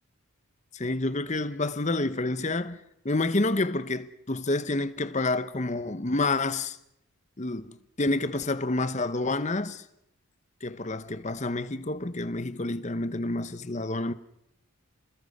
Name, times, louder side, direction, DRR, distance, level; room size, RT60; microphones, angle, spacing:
voice 1, 0.7-6.8 7.4-9.8 10.6-14.1, left 2 dB, 30° left, 1.0 m, -29 dB
29.5 x 20.5 x 5.6 m
head